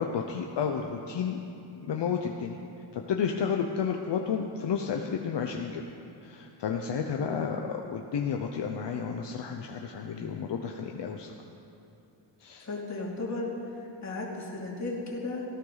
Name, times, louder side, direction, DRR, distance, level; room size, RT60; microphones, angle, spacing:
voice 1, 0.0-1.4 1.9-2.6 2.9-5.8 6.2-11.3 12.4-12.7, left 6 dB, 70° left, 2 dB, 0.9 m, -31 dB
voice 2, 7.2-7.6 12.6-13.5 14.0-15.5, left 3 dB, 40° left, -3 dB, 2.8 m, -35 dB
18.0 x 15.0 x 4.0 m, 2.7 s
wide cardioid pair, 105°, 44 cm